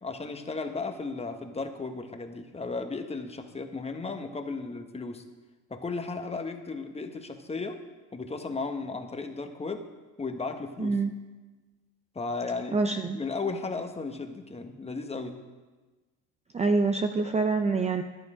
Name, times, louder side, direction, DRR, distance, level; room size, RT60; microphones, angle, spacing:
voice 1, 0.0-5.2 5.7-7.8 8.1-9.8 10.2-11.0 12.1-12.8 13.1-15.4, left 3 dB, 15° left, 6 dB, 1.2 m, -35 dB
voice 2, 10.8-11.2 12.7-13.2 16.5-18.0, right 3 dB, 20° right, 6 dB, 0.6 m, -26 dB
11.0 x 10.0 x 4.9 m, 1.3 s
supercardioid pair, 90°, 35 cm